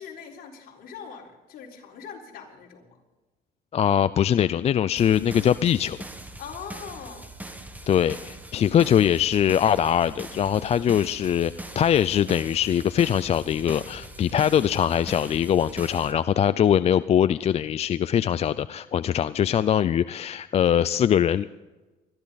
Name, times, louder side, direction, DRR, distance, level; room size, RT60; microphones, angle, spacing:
voice 1, 0.0-3.0 6.4-7.3, left 7 dB, 65° left, -1 dB, 4.2 m, -41 dB
voice 2, 3.7-6.0 7.9-21.5, left 9 dB, 40° left, 15 dB, 0.4 m, -22 dB
sound 1, 5.0-16.1, right 2 dB, 10° right, 1.6 m, -41 dB
21.0 x 14.0 x 4.0 m, 1.2 s
cardioid pair, 110°, 17 cm